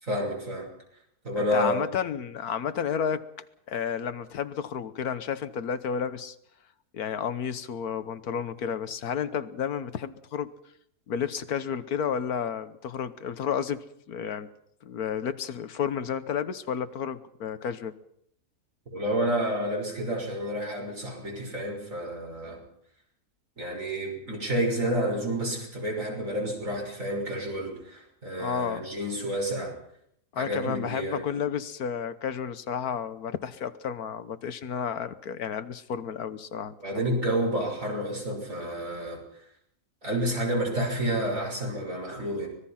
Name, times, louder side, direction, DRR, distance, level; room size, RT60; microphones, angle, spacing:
voice 1, 0.0-0.7 1.2-1.7 18.9-22.6 23.6-29.7 30.4-31.3 36.8-39.2 40.0-42.5, right 1 dB, 55° right, 0 dB, 6.5 m, -29 dB
voice 2, 1.4-3.2 3.7-6.3 6.9-10.5 11.1-14.5 14.8-17.9 28.4-28.9 30.3-37.0, left 7 dB, 75° left, 13 dB, 1.5 m, -31 dB
25.0 x 20.0 x 5.8 m, 0.71 s
omnidirectional pair, 1.6 m